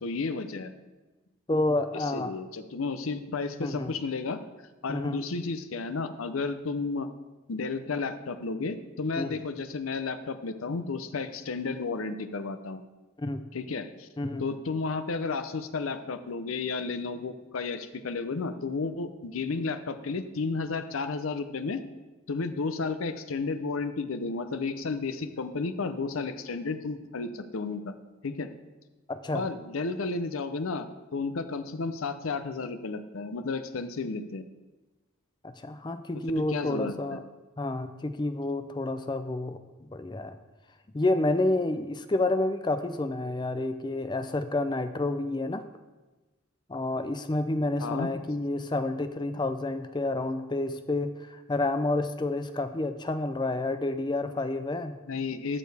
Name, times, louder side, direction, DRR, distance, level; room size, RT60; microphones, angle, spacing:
voice 1, 0.0-0.7 2.0-4.4 4.8-7.1 7.5-12.8 13.5-14.1 14.4-21.8 22.3-27.9 28.2-28.5 29.3-30.9 31.1-34.5 36.4-37.2 47.8-48.1 55.0-55.6, left 4 dB, 85° left, 10 dB, 0.6 m, -32 dB
voice 2, 1.5-2.3 3.6-3.9 4.9-5.2 9.2-9.4 13.2-13.4 14.2-14.4 29.1-29.5 35.4-37.2 37.6-40.4 40.9-45.6 46.7-55.0, left 2 dB, 20° left, 10 dB, 0.4 m, -29 dB
12.5 x 6.7 x 3.4 m, 1.2 s
head